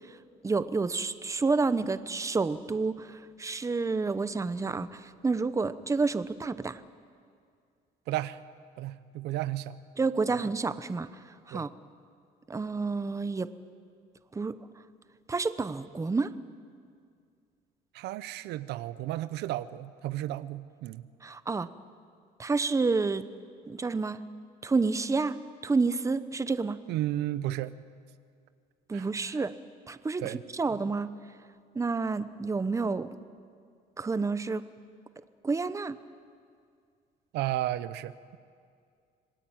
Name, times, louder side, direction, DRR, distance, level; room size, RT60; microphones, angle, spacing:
voice 1, 0.4-6.8 10.0-11.1 11.5-11.7 12.5-13.5 14.3-14.6 15.3-16.3 21.2-21.7 22.4-23.3 23.7-24.2 24.6-25.4 25.6-26.8 28.9-29.5 29.9-31.1 31.7-33.1 34.0-34.6 35.4-36.0, right 4 dB, 20° right, 13 dB, 0.9 m, -29 dB
voice 2, 8.1-8.4 8.8-9.7 10.3-10.4 11.5-11.7 17.9-21.1 26.9-27.7 28.9-29.4 30.2-30.4 37.3-38.4, right 14 dB, 85° right, 14 dB, 0.8 m, -33 dB
27.0 x 19.0 x 8.9 m, 2.2 s
cardioid pair, 110°, 17 cm